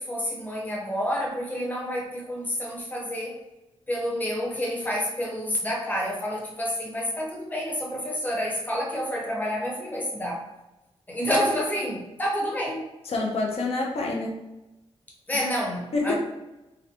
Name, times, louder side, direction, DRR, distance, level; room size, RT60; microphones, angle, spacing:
voice 1, 0.0-3.4 3.9-10.4 11.1-12.8 15.3-16.1, equal, 15° left, -2 dB, 0.7 m, -29 dB
voice 2, 13.0-14.4 15.4-15.5 15.9-16.1, left 3 dB, 70° left, -1 dB, 0.6 m, -27 dB
3.8 x 2.1 x 2.8 m, 0.99 s
wide cardioid pair, 140°, 11 cm